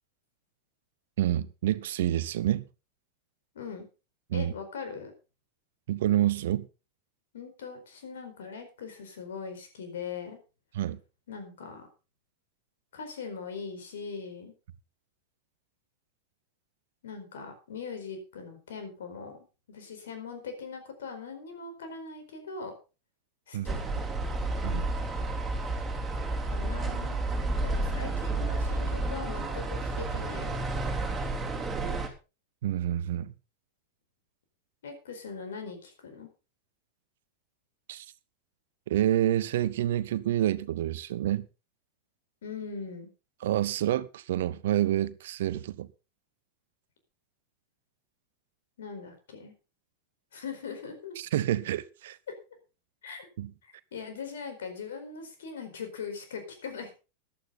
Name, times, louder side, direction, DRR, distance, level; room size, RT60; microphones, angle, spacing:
voice 1, 1.2-2.6 4.3-4.5 5.9-6.7 10.7-11.0 23.5-23.7 24.6-24.9 32.6-33.3 37.9-38.1 38.9-41.5 43.4-45.9 51.2-52.2 53.4-53.5, right 12 dB, 55° right, 0.7 m, -28 dB
voice 2, 4.3-5.1 7.3-10.4 11.3-11.9 12.9-14.5 17.0-19.4 19.7-22.7 23.5-23.8 26.5-27.2 27.6-30.6 34.8-36.3 42.4-43.1 48.8-49.5 50.3-51.2 53.0-53.3 53.6-57.0, left 5 dB, 60° left, 4.5 m, -40 dB
sound 1, 23.7-32.1, right 2 dB, 10° right, 3.6 m, -31 dB
14.5 x 11.5 x 4.0 m
figure-of-eight pair, 90°, 0 cm